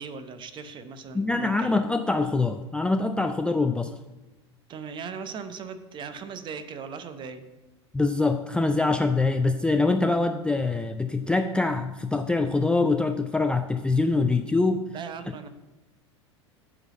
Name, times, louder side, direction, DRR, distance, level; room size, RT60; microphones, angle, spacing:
voice 1, 0.0-1.7 4.7-7.5 14.9-15.5, right 5 dB, 30° right, 10 dB, 0.8 m, -38 dB
voice 2, 1.1-3.9 7.9-14.8, left 3 dB, 5° left, 6 dB, 0.3 m, -24 dB
8.8 x 4.0 x 6.9 m, 1.1 s
figure-of-eight pair, 80°, 15 cm